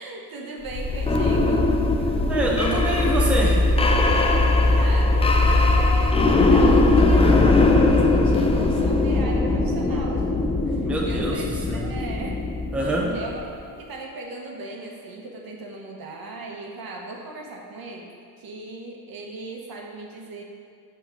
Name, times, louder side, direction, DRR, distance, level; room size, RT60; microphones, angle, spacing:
voice 1, 0.0-1.7 4.6-5.2 5.5-10.3 10.6-12.4 13.1-13.4 13.8-20.4, right 2 dB, 50° right, 0 dB, 1.2 m, -37 dB
sound 1, 0.7-13.4, left 2 dB, 15° left, 0.4 m, -20 dB
voice 2, 2.3-3.7 10.8-11.4 11.7-11.9 12.7-13.2, right 1 dB, 5° right, -3 dB, 0.8 m, -25 dB
6.0 x 4.6 x 5.8 m, 2.2 s
cardioid pair, 105°, 45 cm